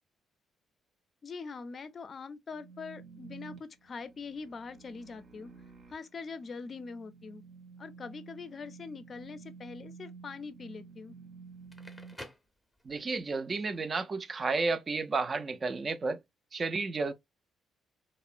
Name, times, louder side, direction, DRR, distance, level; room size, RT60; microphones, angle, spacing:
voice 1, 1.2-5.5 5.9-7.4 7.8-11.2, left 4 dB, 45° left, 0.4 m, -43 dB
sound 1, 2.5-12.1, right 5 dB, 65° right, 0.7 m, -51 dB
Crackle, 11.5-13.2, left 1 dB, ahead, 0.7 m, -49 dB
voice 2, 12.9-16.2 16.5-17.1, right 3 dB, 35° right, 0.4 m, -32 dB
2.8 x 2.0 x 2.4 m
cardioid pair, 90°, 0 cm